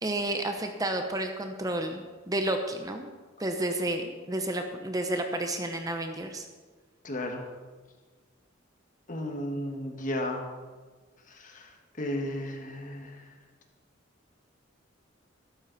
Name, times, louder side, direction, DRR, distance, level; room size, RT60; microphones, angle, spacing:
voice 1, 0.0-3.1 3.4-6.4, right 1 dB, 20° right, 5 dB, 0.8 m, -31 dB
voice 2, 7.0-7.5 9.1-10.5 11.3-11.7 12.0-13.2, left 1 dB, 40° left, 3 dB, 1.6 m, -34 dB
13.5 x 12.5 x 4.1 m, 1.4 s
head